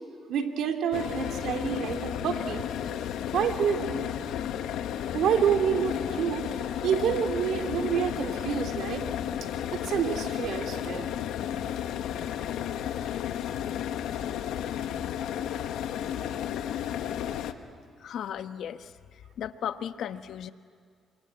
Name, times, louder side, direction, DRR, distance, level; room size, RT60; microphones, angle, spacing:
voice 1, 0.3-2.7 3.3-4.1 5.1-6.5 6.8-9.1 9.7-11.1, right 8 dB, 80° right, 5 dB, 2.6 m, -28 dB
sound 1, 0.9-17.5, left 10 dB, 85° left, 1.2 m, -33 dB
voice 2, 18.0-20.5, left 9 dB, 70° left, 10 dB, 1.1 m, -36 dB
28.0 x 24.0 x 8.9 m, 2.3 s
cardioid pair, 90°, 0 cm